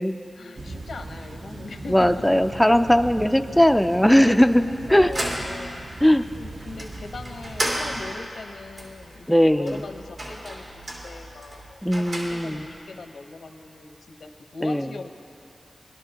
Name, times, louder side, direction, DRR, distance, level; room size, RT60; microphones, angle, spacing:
voice 1, 0.4-2.1 3.2-3.6 4.5-5.9 6.4-15.1, left 4 dB, 90° left, 5 dB, 0.8 m, -40 dB
sound 1, 0.6-8.1, right 2 dB, 45° right, 0.6 m, -39 dB
voice 2, 1.9-4.6 4.9-5.1 6.0-6.3 9.3-9.8 11.8-12.6 14.6-14.9, equal, 5° left, 7 dB, 0.3 m, -18 dB
sound 2, 4.8-12.7, right 1 dB, 65° right, 2.5 m, -34 dB
21.5 x 12.5 x 2.8 m, 2.5 s
wide cardioid pair, 130°, 0 cm